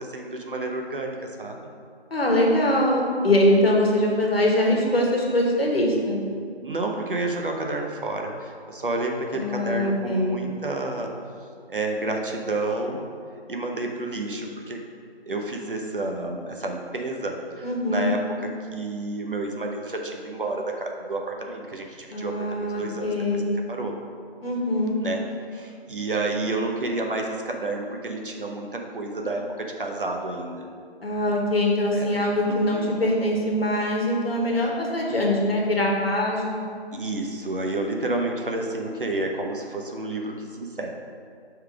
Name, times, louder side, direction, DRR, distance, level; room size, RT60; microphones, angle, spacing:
voice 1, 0.0-1.7 3.7-3.8 6.6-11.1 11.7-13.0 13.5-14.8 15.3-23.4 23.7-23.9 25.0-25.2 25.5-30.7 31.9-32.2 32.4-32.9 36.9-40.9, right 2 dB, 55° right, 2 dB, 0.8 m, -30 dB
voice 2, 2.1-6.2 9.3-10.3 17.6-18.1 22.1-23.5 24.4-25.0 31.0-36.7, left 1 dB, 65° left, -1 dB, 1.4 m, -23 dB
5.6 x 3.9 x 4.7 m, 2.2 s
figure-of-eight pair, 165°, 32 cm